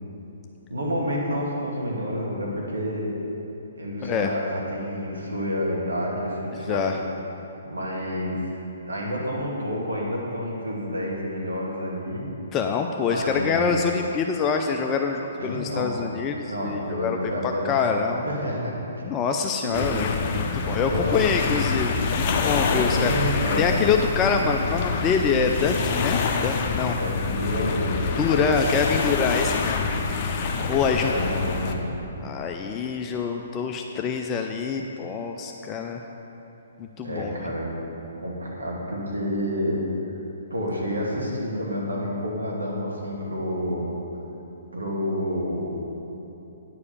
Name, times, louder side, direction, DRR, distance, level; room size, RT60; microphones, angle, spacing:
voice 1, 0.7-3.1 3.8-6.9 7.6-8.5 8.9-12.3 13.0-13.8 15.4-15.9 16.5-19.0 19.6-20.3 20.6-21.6 22.7-23.7 26.9-28.9 30.6-30.7 31.0-31.9 37.0-37.7 38.2-39.8 40.5-43.9 44.7-45.7, equal, 90° right, -4 dB, 2.3 m, -29 dB
voice 2, 6.6-7.0 12.5-17.2 17.4-18.2 19.0-27.0 28.2-29.8 30.7-31.1 32.2-36.0 36.8-37.5, left 6 dB, 25° left, 3 dB, 0.4 m, -25 dB
sound 1, 19.7-31.7, left 4 dB, 40° left, 0.8 m, -26 dB
9.7 x 4.9 x 7.0 m, 3.0 s
hypercardioid pair, 140°, 0 cm